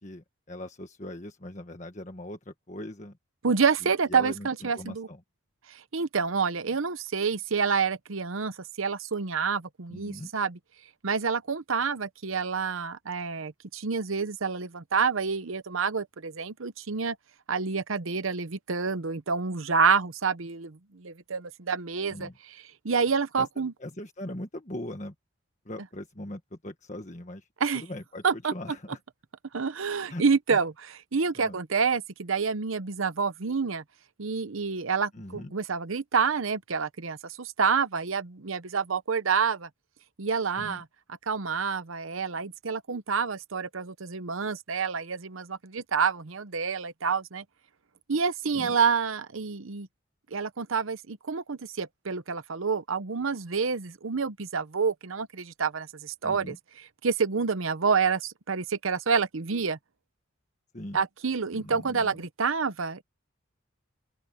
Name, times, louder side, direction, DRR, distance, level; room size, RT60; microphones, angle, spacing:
voice 1, 0.0-3.2 3.8-4.5 4.7-5.2 9.9-10.3 22.1-22.3 23.4-23.5 23.8-25.1 25.6-27.5 27.7-29.0 30.1-30.2 30.5-30.6 31.3-31.6 35.1-35.5 40.6-40.8 48.5-48.8 56.2-56.6 60.7-61.0 61.5-62.1, left 1 dB, 35° left, 1.6 m, -40 dB
voice 2, 3.4-5.1 5.7-10.6 11.0-17.2 17.5-22.6 22.8-23.7 27.6-27.8 28.2-28.5 29.5-33.8 34.2-39.7 40.2-40.8 41.3-47.4 48.1-49.9 50.3-56.5 57.0-59.8 60.9-63.0, right 5 dB, 80° right, 0.9 m, -28 dB
open air
head